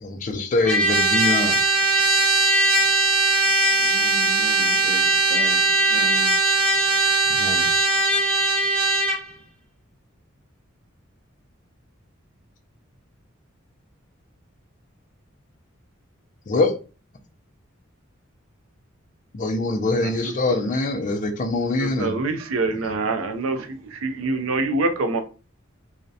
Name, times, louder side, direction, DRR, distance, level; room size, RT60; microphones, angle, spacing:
voice 1, 0.0-1.6 7.3-7.7 16.5-16.7 19.3-22.2 22.7-22.9, left 2 dB, 40° left, 0.4 m, -24 dB
Trumpet, 0.7-9.2, right 2 dB, 5° left, 0.7 m, -20 dB
voice 2, 3.8-6.4, equal, 30° right, 0.6 m, -37 dB
voice 3, 21.8-25.2, right 3 dB, 90° right, 0.4 m, -25 dB
2.4 x 2.0 x 2.6 m
head